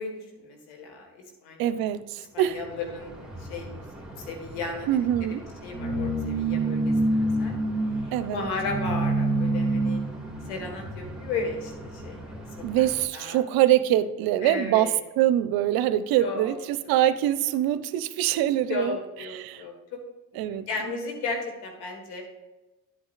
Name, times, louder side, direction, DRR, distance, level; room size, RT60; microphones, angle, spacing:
voice 1, 0.0-1.8 2.3-4.9 5.6-7.5 8.0-10.0 10.5-12.2 12.6-12.9 13.1-13.4 14.4-15.0 16.2-16.6 16.9-17.1 18.7-20.0 20.3-22.2, left 4 dB, 80° left, 2 dB, 1.7 m, -35 dB
voice 2, 1.6-2.6 4.9-5.4 8.1-8.5 12.6-19.0 19.3-19.6 20.4-20.7, right 12 dB, 70° right, 13 dB, 0.6 m, -24 dB
sound 1, 2.6-13.1, right 2 dB, ahead, 1.9 m, -29 dB
10.0 x 8.0 x 2.5 m, 1.1 s
hypercardioid pair, 55°, 37 cm